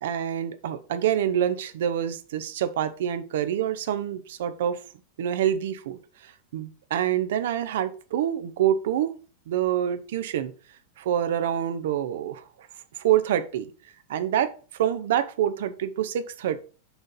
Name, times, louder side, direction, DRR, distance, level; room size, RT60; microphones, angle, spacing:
voice 1, 0.0-4.8 5.2-9.1 9.5-10.5 11.0-12.7 13.0-13.7 14.1-14.5 14.8-16.6, right 10 dB, 55° right, 12 dB, 0.7 m, -26 dB
6.0 x 3.9 x 5.2 m, 0.38 s
figure-of-eight pair, 90°, 0 cm